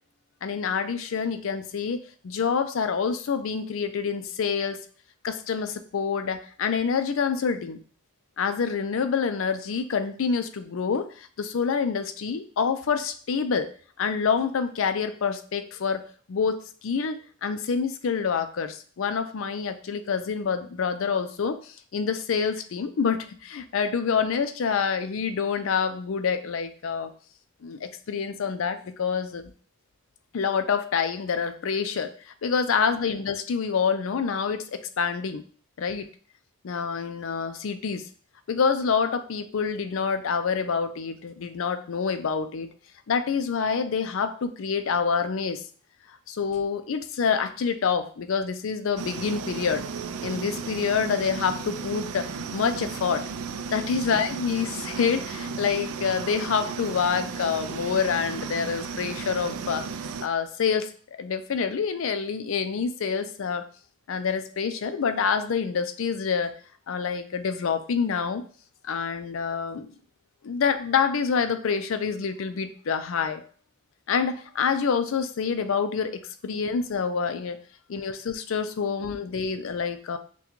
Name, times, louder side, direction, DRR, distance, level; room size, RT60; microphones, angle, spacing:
voice 1, 0.4-4.8 5.2-7.8 8.4-13.7 14.0-16.0 16.3-27.1 27.6-29.4 30.3-35.4 35.8-36.1 36.6-38.1 38.5-42.7 43.1-45.6 46.3-49.8 50.2-53.2 53.7-59.8 60.2-60.9 61.2-63.7 64.1-66.5 66.9-68.4 68.8-69.9 70.4-73.4 74.1-77.6 77.9-80.2, left 6 dB, 65° left, 9 dB, 0.4 m, -27 dB
sound 1, 49.0-60.3, right 5 dB, 80° right, 0.3 m, -34 dB
5.9 x 2.2 x 3.0 m, 0.43 s
head